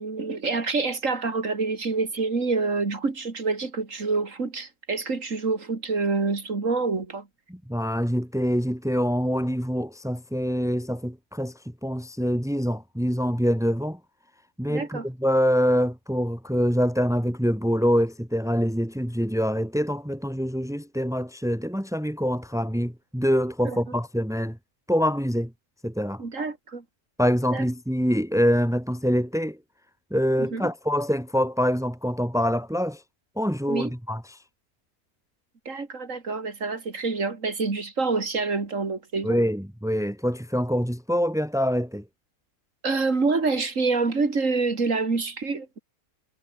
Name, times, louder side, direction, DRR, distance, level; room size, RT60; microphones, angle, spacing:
voice 1, 0.0-7.3 14.7-15.1 23.6-23.8 26.2-26.8 27.5-27.6 30.4-30.7 33.7-33.9 35.6-39.4 42.8-45.8, right 4 dB, 55° right, 3.1 m, -27 dB
voice 2, 7.5-11.5 11.8-14.0 14.6-24.6 24.9-25.5 25.8-26.2 27.2-29.6 30.1-33.0 33.4-34.4 39.2-42.0, equal, ahead, 4.2 m, -25 dB
omnidirectional pair, 1.6 m